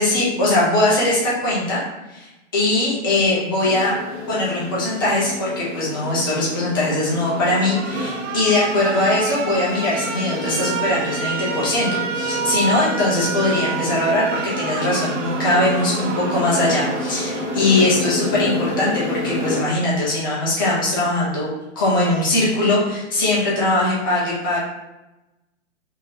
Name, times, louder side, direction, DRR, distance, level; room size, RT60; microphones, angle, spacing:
voice 1, 0.0-1.8 2.1-4.0 4.3-21.5 21.8-24.6, left 2 dB, 20° left, -7 dB, 0.4 m, -21 dB
sound 1, 3.6-19.8, equal, 20° right, 1.2 m, -29 dB
Alarm, 7.0-18.1, right 6 dB, 70° right, 0.6 m, -29 dB
3.6 x 2.6 x 2.7 m, 1.0 s
hypercardioid pair, 155°, 39 cm